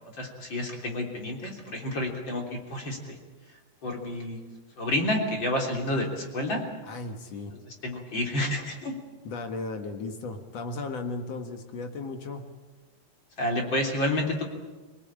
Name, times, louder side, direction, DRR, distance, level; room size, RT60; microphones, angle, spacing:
voice 1, 0.2-3.2 3.8-4.4 4.8-6.6 7.8-8.9 13.4-14.5, left 1 dB, 30° left, 1 dB, 3.6 m, -29 dB
voice 2, 6.8-7.5 9.2-12.5, left 3 dB, 55° left, 6 dB, 1.9 m, -35 dB
25.5 x 18.5 x 8.8 m, 1.2 s
omnidirectional pair, 4.9 m